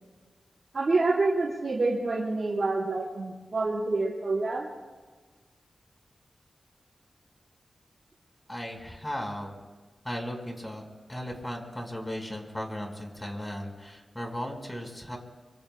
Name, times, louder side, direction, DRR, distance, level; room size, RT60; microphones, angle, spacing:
voice 1, 0.7-4.7, right 3 dB, 60° right, -8 dB, 4.3 m, -27 dB
voice 2, 8.5-9.5 10.0-10.8 11.1-15.2, equal, 15° left, 2 dB, 4.6 m, -36 dB
25.5 x 24.5 x 2.2 m, 1.3 s
cardioid pair, 55°, 0 cm